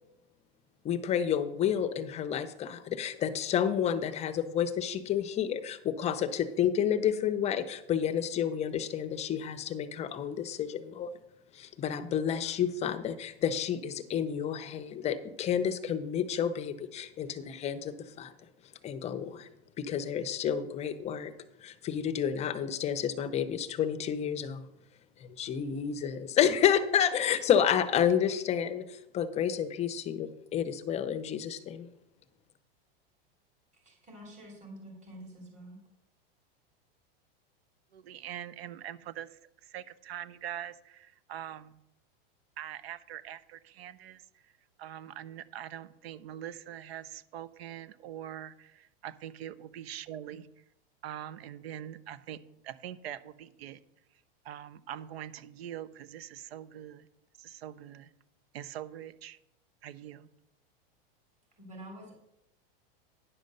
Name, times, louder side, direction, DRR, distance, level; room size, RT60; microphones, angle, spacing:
voice 1, 0.8-11.1 11.5-18.3 18.8-19.5 19.8-21.3 21.6-24.6 25.2-31.9, left 9 dB, 20° left, 12 dB, 0.6 m, -30 dB
voice 2, 33.8-35.8 61.6-62.2, right 1 dB, 25° right, 0 dB, 3.5 m, -47 dB
voice 3, 37.9-41.8 42.6-44.5 44.8-50.5 51.0-53.8 54.4-57.1 57.4-58.1 58.5-59.4 59.8-60.3, right 11 dB, 80° right, 16 dB, 0.8 m, -43 dB
10.0 x 5.2 x 6.6 m, 0.86 s
supercardioid pair, 145°, 30 cm